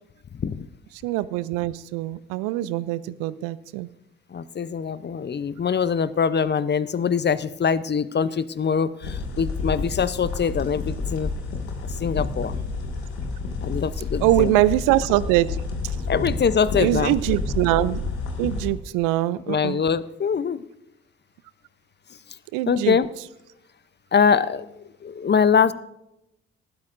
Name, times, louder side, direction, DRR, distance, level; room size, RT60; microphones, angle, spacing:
voice 1, 1.0-3.9 14.2-15.6 16.8-18.0 18.4-19.8 22.5-23.0, right 16 dB, 75° right, 18 dB, 0.5 m, -23 dB
voice 2, 4.3-11.3 12.0-12.6 13.6-14.5 16.1-17.2 19.5-20.6 22.7-23.1 24.1-25.7, left 6 dB, 35° left, 16 dB, 0.6 m, -23 dB
sound 1, 9.0-18.7, left 4 dB, 80° left, 1.9 m, -29 dB
19.0 x 12.5 x 2.6 m, 0.87 s
hypercardioid pair, 45°, 32 cm